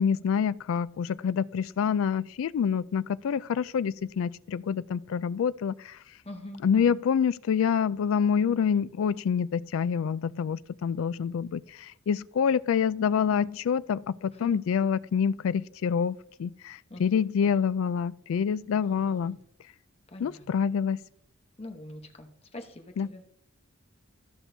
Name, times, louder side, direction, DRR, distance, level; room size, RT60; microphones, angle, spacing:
voice 1, 0.0-6.0 6.6-19.4 20.2-21.0 23.0-23.1, left 7 dB, 75° left, 0.3 m, -27 dB
voice 2, 6.2-7.0 11.0-11.2 14.3-14.6 16.9-17.6 18.6-19.4 20.1-20.5 21.6-23.3, left 1 dB, 30° left, 0.9 m, -44 dB
13.5 x 6.0 x 2.7 m
head